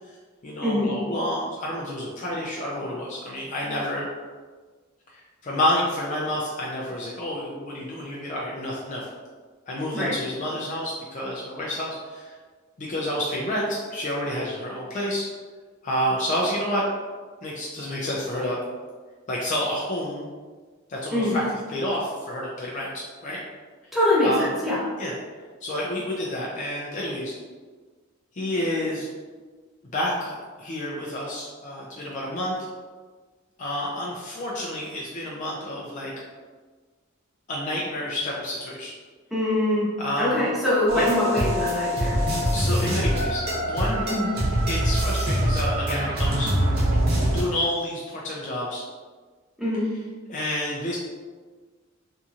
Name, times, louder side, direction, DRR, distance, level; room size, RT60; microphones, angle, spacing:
voice 1, 0.4-4.1 5.1-9.1 9.7-12.3 12.8-15.3 15.8-16.8 17.4-18.6 19.3-20.3 20.9-23.4 24.2-24.5 25.0-25.1 25.6-27.3 28.3-29.1 29.9-32.6 33.6-36.1 37.5-38.9 40.0-40.5 40.9-41.1 42.5-43.4 43.7-44.0 44.7-46.8 47.2-48.8 50.3-51.0, left 1 dB, 35° left, -4 dB, 0.4 m, -29 dB
voice 2, 23.9-24.8 39.3-39.9 40.2-42.1 44.1-44.3 49.6-49.8, left 1 dB, ahead, -9 dB, 0.9 m, -23 dB
They're coming, 40.9-47.4, equal, 50° right, 0.8 m, -24 dB
2.8 x 2.6 x 2.4 m, 1.4 s
head